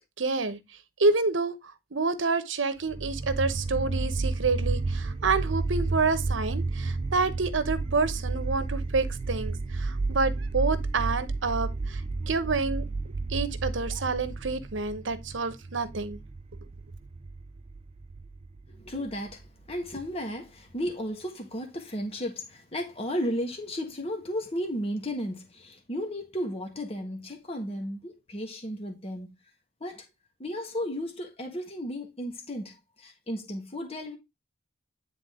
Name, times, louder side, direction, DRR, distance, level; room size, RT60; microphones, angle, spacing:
voice 1, 0.2-0.6 1.0-1.5 1.9-12.0 12.3-12.8 13.3-16.2, right 3 dB, 75° right, 1.0 m, -28 dB
sound 1, 2.9-19.9, right 3 dB, 30° right, 0.3 m, -32 dB
voice 2, 18.7-29.3 29.8-30.1 30.4-34.2, equal, 30° left, 1.4 m, -34 dB
9.5 x 3.8 x 3.6 m
head